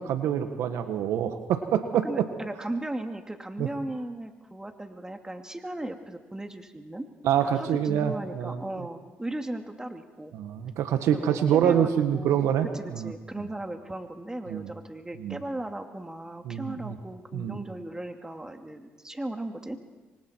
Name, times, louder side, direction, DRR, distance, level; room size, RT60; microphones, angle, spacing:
voice 1, 0.0-2.1 3.6-3.7 7.2-8.6 10.3-12.7 12.9-13.1 14.5-14.7 15.2-15.4 16.4-16.9 17.3-17.6, right 9 dB, 75° right, 8 dB, 1.5 m, -26 dB
voice 2, 2.0-7.1 7.4-10.3 11.1-19.8, right 1 dB, 15° right, 5 dB, 2.7 m, -37 dB
27.5 x 24.5 x 4.6 m, 1.2 s
supercardioid pair, 60°, 5 cm